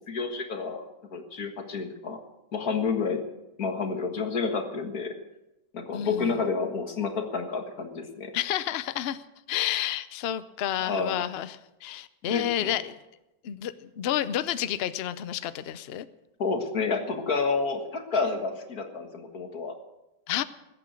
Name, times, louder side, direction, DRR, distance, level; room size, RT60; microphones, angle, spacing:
voice 1, 0.1-0.8 1.1-2.2 2.5-3.2 3.6-5.1 5.7-8.3 10.8-11.2 12.3-12.7 16.4-19.8, left 4 dB, 55° left, 5 dB, 2.1 m, -29 dB
voice 2, 5.9-6.4 8.3-9.2 9.5-13.0 13.4-16.1 20.3-20.4, left 11 dB, 85° left, 13 dB, 0.5 m, -30 dB
20.5 x 8.9 x 6.4 m, 0.95 s
omnidirectional pair, 1.9 m